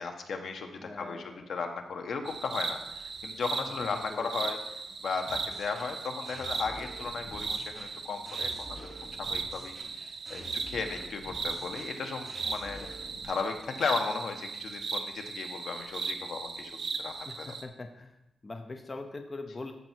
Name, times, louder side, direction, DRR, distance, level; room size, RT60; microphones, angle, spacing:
voice 1, 0.0-4.6 5.0-8.9 9.2-12.9 13.1-17.5, left 5 dB, 70° left, 5 dB, 1.2 m, -36 dB
voice 2, 0.8-1.5 3.8-4.3 17.3-18.2 18.4-19.7, left 3 dB, 25° left, 5 dB, 0.6 m, -42 dB
sound 1, 2.3-17.6, right 4 dB, 50° right, 0.9 m, -38 dB
sound 2, 5.2-13.2, equal, 5° right, 3.4 m, -48 dB
14.0 x 5.5 x 4.6 m, 0.88 s
wide cardioid pair, 155°, 0 cm